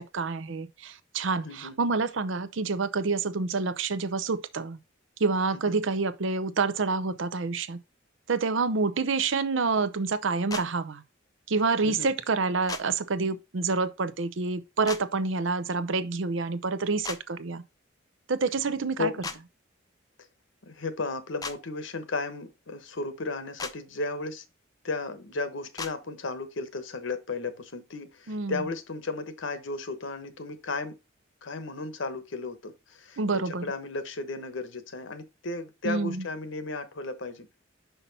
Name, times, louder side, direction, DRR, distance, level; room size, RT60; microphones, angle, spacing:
voice 1, 0.0-4.8 5.2-7.8 8.3-11.0 11.5-17.6 18.3-19.1 28.3-28.6 33.2-33.7 35.8-36.3, right 4 dB, 70° right, 0.6 m, -28 dB
voice 2, 1.4-1.7 5.7-5.8 11.8-12.1 19.0-19.2 20.7-24.4 24.8-30.9 31.4-37.6, left 3 dB, 70° left, 1.1 m, -34 dB
sound 1, 10.5-10.6 12.7-12.8 14.9-15.0 17.0-17.2 19.2-19.4 21.4-21.6 23.6-23.7 25.8-25.9, left 4 dB, 20° left, 0.6 m, -35 dB
5.8 x 5.4 x 4.0 m
head